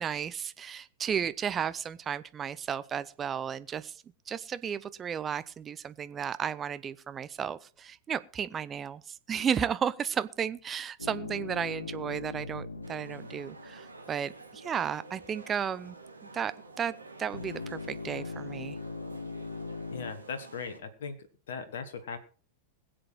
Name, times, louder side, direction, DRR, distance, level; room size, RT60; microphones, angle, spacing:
voice 1, 0.0-4.0 4.3-16.0 16.3-16.5 16.8-16.9 17.2-18.8, right 8 dB, 25° right, 0.8 m, -33 dB
sound 1, 11.0-14.4 17.3-20.1, left 3 dB, 80° left, 1.2 m, -40 dB
sound 2, 12.8-20.8, right 3 dB, 80° right, 1.9 m, -50 dB
voice 2, 19.9-22.2, left 5 dB, 60° left, 1.4 m, -39 dB
21.0 x 7.8 x 4.6 m
figure-of-eight pair, 90°, 0 cm